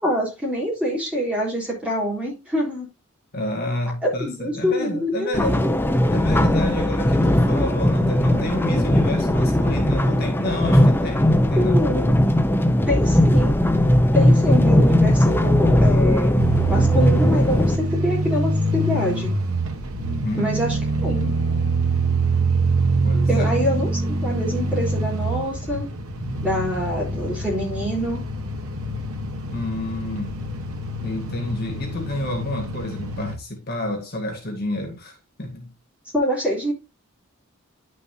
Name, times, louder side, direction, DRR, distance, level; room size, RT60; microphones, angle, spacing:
voice 1, 0.0-2.9 4.0-5.5 11.6-12.2 12.9-13.6 14.1-16.3 16.7-19.3 20.4-21.3 23.3-25.9 26.4-28.2 36.1-36.7, equal, 5° right, 3.7 m, -25 dB
voice 2, 3.3-5.7 6.1-11.8 20.2-20.5 23.0-23.5 29.5-30.4 31.0-35.7, left 2 dB, 45° left, 1.5 m, -29 dB
sound 1, 5.3-17.8, left 1 dB, 10° left, 0.6 m, -18 dB
sound 2, 16.4-33.4, right 2 dB, 80° right, 1.2 m, -24 dB
10.5 x 6.2 x 2.7 m
head